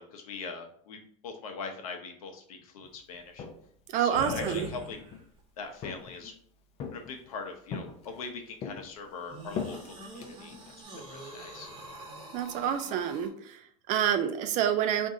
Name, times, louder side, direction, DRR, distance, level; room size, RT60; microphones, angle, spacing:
voice 1, 0.0-3.5 4.0-5.0 5.6-6.3 6.9-10.5 11.1-11.7, left 4 dB, 90° left, 4 dB, 0.8 m, -42 dB
Walk footsteps, 3.1-3.8 4.3-5.3 5.8-6.4 6.8-7.3 7.7-8.3 8.6-10.8, left 6 dB, 35° left, 0.5 m, -40 dB
voice 2, 3.9-4.7 12.3-15.1, right 9 dB, 45° right, 8 dB, 0.5 m, -28 dB
sound 1, 4.1-5.4 6.0-6.1 9.3-13.3, right 1 dB, 25° right, 1.0 m, -42 dB
3.7 x 2.6 x 3.7 m, 0.62 s
supercardioid pair, 130°, 18 cm